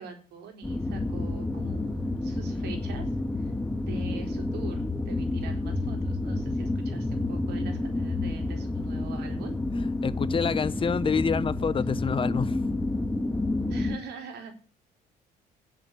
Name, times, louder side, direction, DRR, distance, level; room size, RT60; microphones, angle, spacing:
voice 1, 0.0-3.1 3.4-9.6 11.8-12.4 13.7-14.5, right 5 dB, 75° right, 4.2 m, -44 dB
sound 1, 0.6-14.0, left 2 dB, 10° left, 1.7 m, -29 dB
voice 2, 10.0-12.6, left 6 dB, 30° left, 0.8 m, -27 dB
10.0 x 7.4 x 9.6 m
cardioid pair, 110°, 17 cm